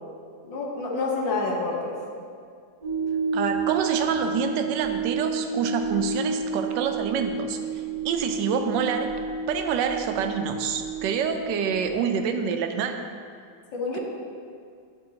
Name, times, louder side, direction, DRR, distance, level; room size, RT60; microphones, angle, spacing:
voice 1, 0.4-2.0 13.7-14.0, left 3 dB, 85° left, -2 dB, 1.9 m, -28 dB
sound 1, 2.8-11.9, right 4 dB, 55° right, 1.5 m, -30 dB
voice 2, 3.3-7.6 8.0-9.1 9.5-13.0, right 7 dB, 75° right, 6 dB, 1.2 m, -27 dB
10.0 x 6.2 x 2.8 m, 2.2 s
omnidirectional pair, 2.0 m